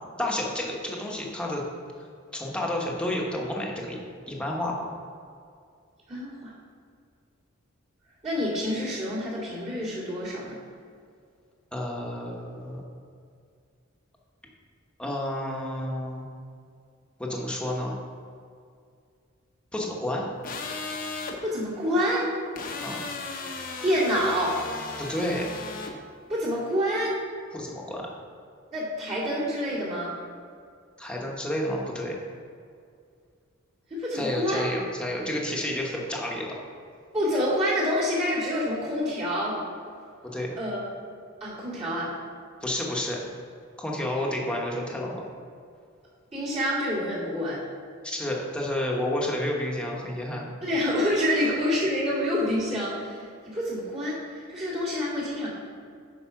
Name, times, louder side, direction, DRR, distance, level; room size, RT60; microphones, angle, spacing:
voice 1, 0.2-1.6 2.3-4.0 4.3-4.9 11.7-12.8 15.0-16.3 17.2-17.9 19.7-20.2 22.8-23.0 25.0-25.5 27.5-28.1 31.0-32.2 34.1-36.7 40.2-40.5 42.6-43.2 43.8-45.2 48.0-50.5 51.4-51.5, left 1 dB, 5° left, -2 dB, 1.2 m, -30 dB
voice 2, 6.1-6.5 8.2-10.6 21.4-22.3 23.8-24.6 26.3-27.2 28.7-30.1 33.9-34.6 37.1-39.6 40.6-40.8 41.4-42.1 46.3-47.6 50.6-55.5, equal, 30° right, -8 dB, 2.4 m, -27 dB
sound 1, 20.4-21.4 22.6-25.9, left 4 dB, 45° left, 0.9 m, -36 dB
9.3 x 4.8 x 5.8 m, 2.3 s
head